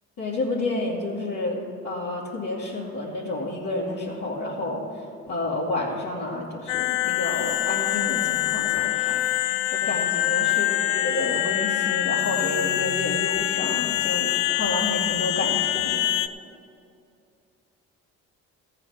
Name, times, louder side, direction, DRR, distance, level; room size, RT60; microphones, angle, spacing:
voice 1, 0.2-4.8 5.3-9.2 9.7-16.1, left 2 dB, 55° left, -8 dB, 2.3 m, -30 dB
sound 1, 6.7-16.3, left 15 dB, 85° left, 0.5 m, -25 dB
14.5 x 4.9 x 8.6 m, 2.5 s
supercardioid pair, 80°, 33 cm